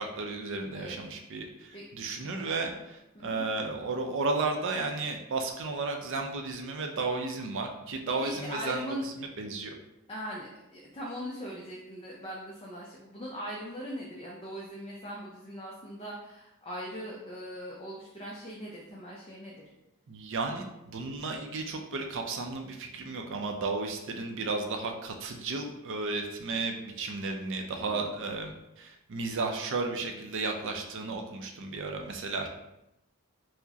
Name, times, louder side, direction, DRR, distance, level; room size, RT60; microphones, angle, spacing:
voice 1, 0.0-9.7 20.1-32.5, right 3 dB, 60° right, 3 dB, 0.5 m, -33 dB
voice 2, 8.1-9.0 10.1-19.6 27.8-28.1, equal, 25° left, -4 dB, 0.4 m, -40 dB
4.5 x 2.1 x 2.8 m, 0.90 s
head